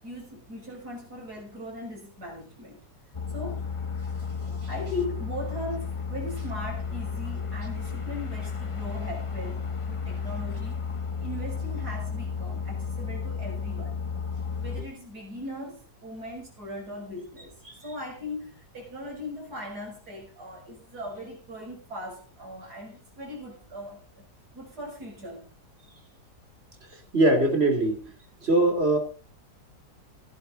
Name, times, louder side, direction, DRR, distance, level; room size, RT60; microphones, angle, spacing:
voice 1, 0.0-2.8 3.3-3.7 4.7-10.8 11.2-14.0 14.6-24.2 24.5-25.5, left 1 dB, 60° right, -1 dB, 7.7 m, -39 dB
sound 1, 3.1-14.8, left 5 dB, 25° left, 0.7 m, -33 dB
voice 2, 27.1-28.0 28.4-29.0, right 2 dB, 35° right, 5 dB, 3.2 m, -21 dB
17.0 x 11.5 x 4.1 m, 0.36 s
omnidirectional pair, 1.9 m